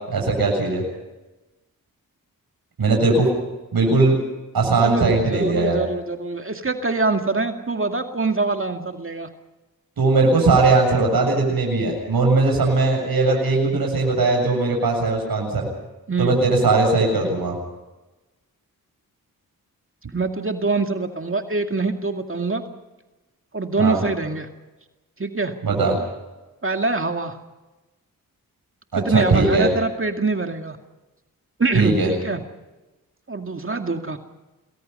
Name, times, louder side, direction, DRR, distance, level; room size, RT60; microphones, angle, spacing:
voice 1, 0.1-0.8 2.8-3.3 3.7-4.2 4.5-5.8 10.0-15.7 16.2-17.6 23.8-24.0 25.6-25.9 28.9-29.7 31.7-32.1, right 3 dB, 80° right, 1 dB, 7.5 m, -19 dB
voice 2, 4.8-9.3 16.1-16.4 20.1-22.6 23.5-24.5 25.2-25.5 26.6-27.4 29.0-30.8 31.6-32.4 33.3-34.2, right 3 dB, 35° right, 5 dB, 2.2 m, -24 dB
28.0 x 21.5 x 5.5 m, 1.1 s
cardioid pair, 60°, 36 cm